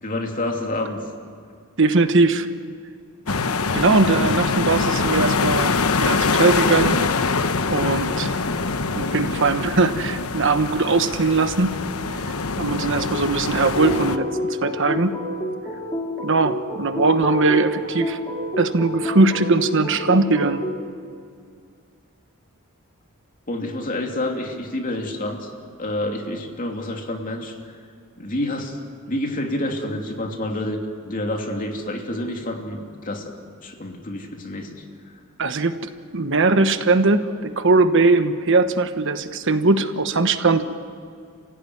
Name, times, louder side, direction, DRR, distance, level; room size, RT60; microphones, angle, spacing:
voice 1, 0.0-1.0 23.5-25.5 25.8-27.8 28.2-28.8 29.1-33.3 33.6-34.8, left 1 dB, 40° left, 2 dB, 2.8 m, -28 dB
voice 2, 1.8-2.5 3.7-7.0 7.7-8.4 8.9-11.7 12.6-15.1 16.2-18.2 18.6-20.6 35.4-35.8 36.1-40.7, right 3 dB, 60° right, 9 dB, 1.2 m, -20 dB
sound 1, 3.3-14.2, left 4 dB, 80° left, 1.0 m, -24 dB
sound 2, 13.7-20.7, left 1 dB, 15° left, 2.7 m, -28 dB
29.5 x 16.0 x 9.7 m, 2.3 s
head